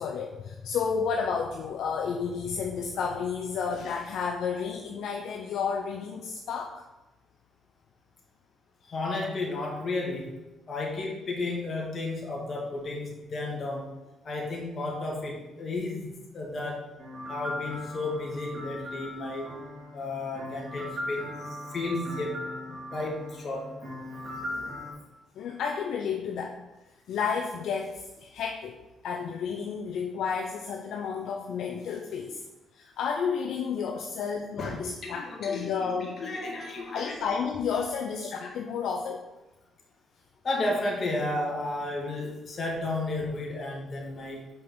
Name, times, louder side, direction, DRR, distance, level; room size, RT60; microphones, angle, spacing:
voice 1, 0.0-6.8 25.4-26.6 27.1-28.8 29.0-32.4 32.7-36.2 36.9-39.2, left 6 dB, 75° left, 1 dB, 0.7 m, -31 dB
voice 2, 8.8-10.4 10.7-14.0 14.2-16.9 17.3-19.5 19.9-23.7 24.0-24.7 34.6-37.2 40.4-44.5, left 2 dB, 45° left, -1 dB, 2.0 m, -33 dB
sound 1, 17.0-24.9, left 1 dB, 45° right, 2.9 m, -38 dB
5.5 x 5.4 x 6.2 m, 1.0 s
cardioid pair, 90°, 0 cm